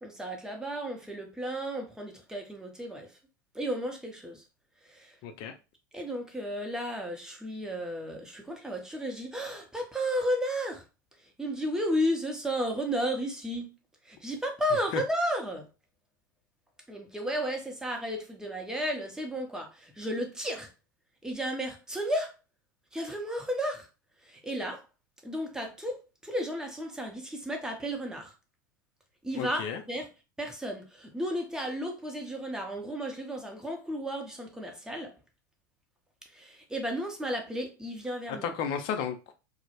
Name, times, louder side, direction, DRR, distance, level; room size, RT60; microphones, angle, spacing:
voice 1, 0.0-3.1 3.5-4.4 4.9-5.1 5.9-10.8 11.4-13.7 14.1-15.7 16.9-20.7 21.2-22.3 22.9-23.9 24.3-24.8 25.2-28.3 29.2-30.1 30.4-35.1 36.3-38.5, equal, 5° right, 0.6 m, -33 dB
voice 2, 5.2-5.5 14.9-15.0 29.3-29.8 38.4-39.3, left 7 dB, 50° left, 0.5 m, -33 dB
2.2 x 2.0 x 2.9 m
hypercardioid pair, 85°, 11 cm